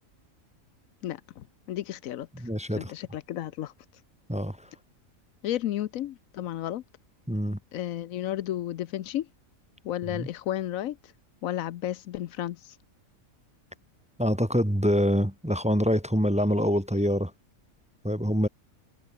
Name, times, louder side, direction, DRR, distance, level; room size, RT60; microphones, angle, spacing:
voice 1, 1.0-2.3 2.8-3.7 5.4-6.8 7.7-9.3 9.8-11.0 11.4-12.7, left 12 dB, 80° left, 1.1 m, -32 dB
voice 2, 2.4-2.9 4.3-4.6 7.3-7.6 10.1-10.3 14.2-17.3 18.0-18.5, equal, 5° right, 1.3 m, -25 dB
omnidirectional pair, 1.4 m